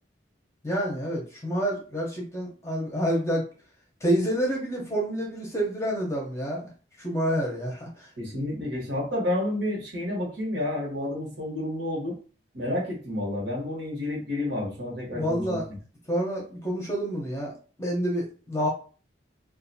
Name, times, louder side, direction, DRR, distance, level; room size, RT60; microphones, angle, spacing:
voice 1, 0.6-3.5 4.0-6.7 7.0-8.1 15.1-15.7 16.1-17.5 17.8-18.7, equal, 15° left, -3 dB, 0.7 m, -28 dB
voice 2, 8.2-12.2 12.5-15.8, left 1 dB, 70° right, -3 dB, 1.2 m, -30 dB
2.6 x 2.4 x 2.7 m, 0.38 s
head